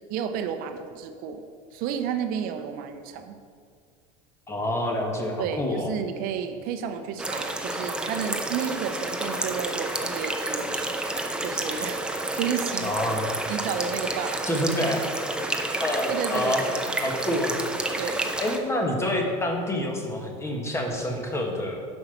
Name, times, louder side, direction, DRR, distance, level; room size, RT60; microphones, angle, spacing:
voice 1, 0.1-1.4 1.7-3.4 5.4-10.9 11.4-12.9 13.5-14.5 16.1-17.0 18.0-18.3, right 8 dB, 60° right, 8 dB, 0.7 m, -32 dB
voice 2, 4.5-5.9 12.8-13.2 14.5-15.0 15.8-16.6 17.0-17.5 18.4-21.8, left 1 dB, 15° left, 1 dB, 1.5 m, -27 dB
sound 1, 7.2-18.6, right 1 dB, 5° right, 0.8 m, -30 dB
6.8 x 5.6 x 7.0 m, 2.1 s
supercardioid pair, 110°, 16 cm